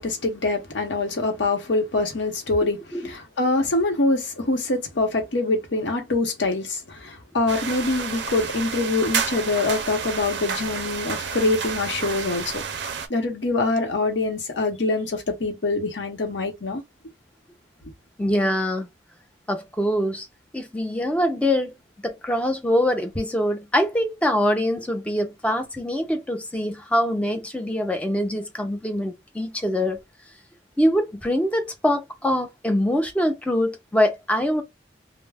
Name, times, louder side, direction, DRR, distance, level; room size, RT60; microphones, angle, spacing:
voice 1, 0.0-12.6 13.1-16.8, left 2 dB, 85° left, 0.8 m, -24 dB
sound 1, 7.5-13.1, right 6 dB, 70° right, 0.4 m, -30 dB
voice 2, 18.2-18.9 19.5-20.3 20.5-21.7 22.0-30.0 30.8-34.6, equal, 5° left, 0.5 m, -24 dB
2.3 x 2.0 x 3.2 m
head